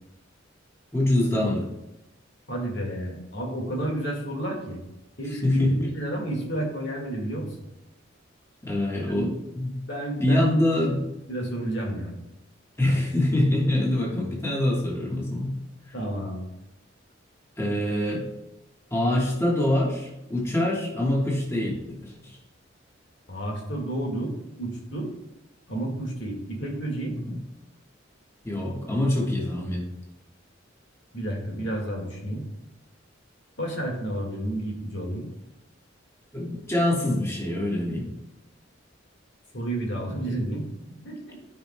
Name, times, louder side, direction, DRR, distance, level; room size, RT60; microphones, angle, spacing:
voice 1, 0.9-1.7 5.4-5.7 8.6-9.7 10.2-11.0 12.8-15.5 15.9-16.0 17.6-18.2 18.9-22.4 27.2-27.4 28.4-29.8 36.3-38.1, left 1 dB, 15° left, -3 dB, 1.4 m, -25 dB
voice 2, 2.5-4.8 5.2-7.6 9.1-9.4 9.9-10.6 11.3-12.2 15.9-16.4 23.3-25.1 25.7-27.1 31.1-32.4 33.6-35.3 39.5-41.4, right 1 dB, 65° left, 0 dB, 1.8 m, -31 dB
13.0 x 5.1 x 2.2 m, 0.91 s
head